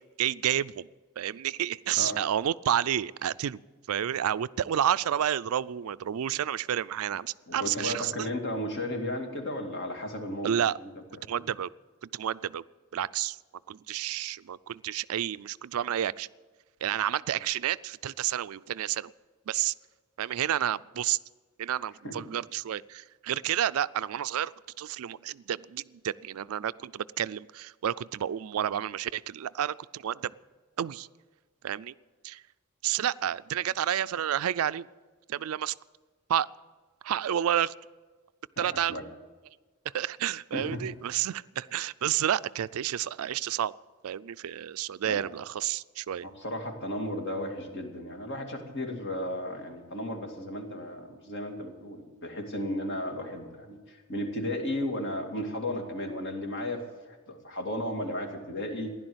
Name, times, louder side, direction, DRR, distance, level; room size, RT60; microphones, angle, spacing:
voice 1, 0.2-0.9 1.2-3.6 3.9-8.1 10.4-10.8 11.3-11.7 12.0-12.6 12.9-13.4 13.7-16.3 16.8-19.1 19.5-19.7 20.2-21.2 21.6-30.3 30.8-31.1 31.6-31.9 32.2-32.4 32.8-34.9 35.3-35.7 36.3-36.5 37.0-37.7 38.6-38.9 39.9-43.7 44.0-46.3, right 10 dB, 70° right, 17 dB, 0.4 m, -30 dB
voice 2, 7.5-10.5 10.8-11.2 22.0-22.2 38.6-39.0 40.5-40.8 45.0-45.2 46.2-58.9, left 1 dB, 60° left, 4 dB, 2.4 m, -34 dB
15.5 x 11.0 x 7.9 m, 1.3 s
head